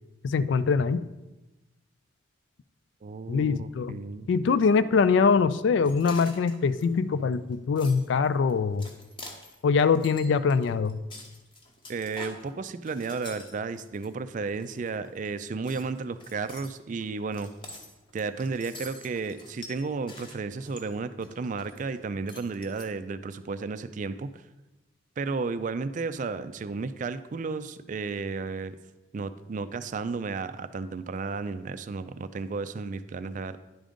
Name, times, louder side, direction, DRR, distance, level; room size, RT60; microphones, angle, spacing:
voice 1, 0.2-1.0 3.3-4.0 4.3-8.9 9.6-11.0, left 5 dB, 65° left, 15 dB, 0.3 m, -23 dB
voice 2, 3.0-4.3 11.9-17.5 18.1-24.3 25.2-28.8 29.1-33.6, right 4 dB, 40° right, 12 dB, 0.3 m, -33 dB
sound 1, 5.8-14.1 14.5-15.3 15.6-22.0 22.3-22.9, left 2 dB, 25° left, 0.9 m, -47 dB
10.0 x 3.8 x 5.1 m, 1.0 s
head